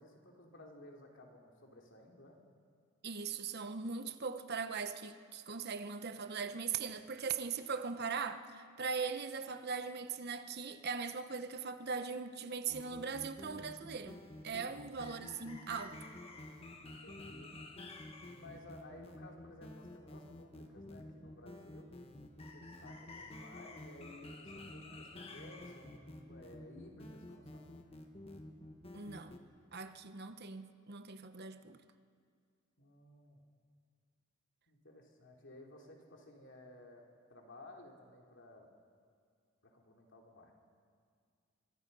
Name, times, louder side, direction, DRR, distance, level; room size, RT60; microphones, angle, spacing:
voice 1, 0.0-2.4 16.8-17.5 18.4-21.9 22.4-27.6 32.8-33.4 34.7-38.7 39.6-40.5, left 1 dB, 60° left, 3.2 m, -56 dB
voice 2, 3.0-14.2 14.4-16.0 28.9-29.3 29.7-31.8, right 5 dB, 50° right, 0.9 m, -40 dB
sound 1, 12.7-29.4, left 1 dB, 30° left, 1.5 m, -50 dB
23.5 x 23.5 x 5.5 m
head